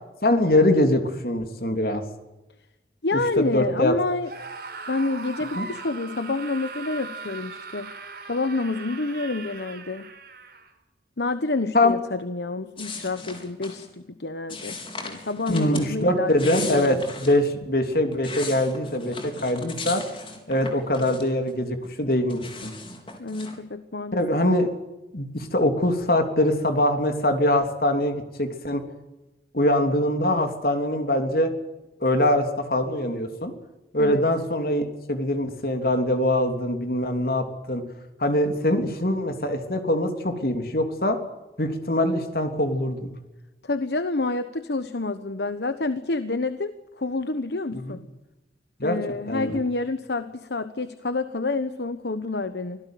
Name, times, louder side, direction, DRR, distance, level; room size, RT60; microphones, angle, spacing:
voice 1, 0.0-2.0 3.1-3.9 5.6-5.7 11.7-12.0 15.5-20.0 20.5-22.7 24.1-24.7 25.1-28.8 29.5-31.5 32.0-33.5 33.9-37.8 38.2-41.2 41.6-43.1 47.7-48.0 48.8-49.0 49.3-49.6, left 1 dB, 55° left, 6 dB, 3.2 m, -23 dB
voice 2, 3.0-4.3 4.9-7.9 8.3-10.1 11.2-13.9 14.2-17.0 23.2-24.2 34.0-34.2 43.6-48.0 48.8-52.8, left 3 dB, 70° left, 11 dB, 1.1 m, -28 dB
Screaming, 4.2-10.7, right 4 dB, 60° right, 5.0 m, -39 dB
sound 1, 12.8-13.9 14.5-15.9 16.2-17.4 17.9-21.5 21.8-23.6, left 4 dB, 30° left, 4.1 m, -37 dB
25.5 x 17.0 x 9.3 m, 1.0 s
head